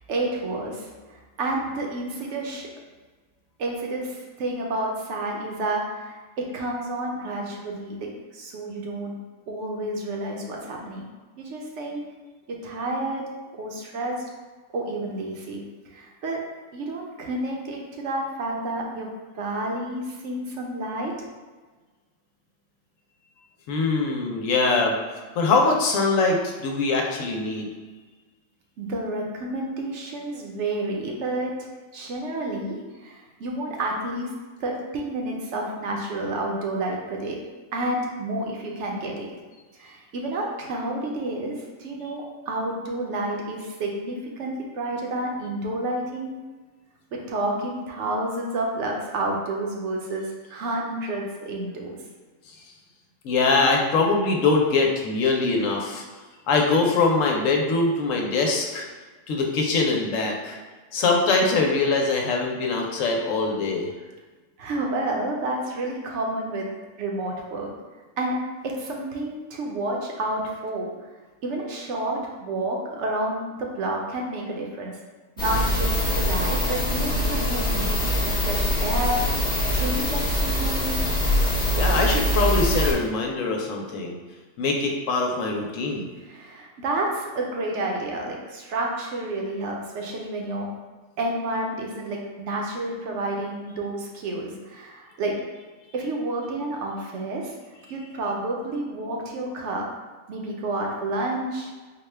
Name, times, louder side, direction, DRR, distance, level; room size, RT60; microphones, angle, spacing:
voice 1, 0.1-2.7 3.6-9.2 9.5-11.0 11.4-12.0 12.5-13.2 13.5-14.2 14.7-19.1 19.3-21.1 28.8-31.5 31.9-32.8 33.0-34.3 34.6-37.4 37.7-39.3 39.8-46.3 47.1-52.0 64.6-66.7 67.0-67.7 68.2-68.4 68.6-70.9 71.4-75.0 75.4-77.9 78.2-79.2 79.7-81.0 86.2-90.7 91.2-95.4 95.9-97.5 97.9-99.9 100.3-101.7, right 2 dB, 70° right, 0 dB, 0.9 m, -30 dB
voice 2, 23.7-25.0 25.3-27.7 52.5-52.6 53.2-56.0 56.5-58.9 59.3-60.6 60.9-63.9 81.7-84.2 84.6-86.1, left 3 dB, 85° left, 1 dB, 1.0 m, -23 dB
sound 1, 75.4-82.9, equal, 5° left, 0.6 m, -23 dB
4.1 x 2.2 x 3.3 m, 1.3 s
omnidirectional pair, 1.3 m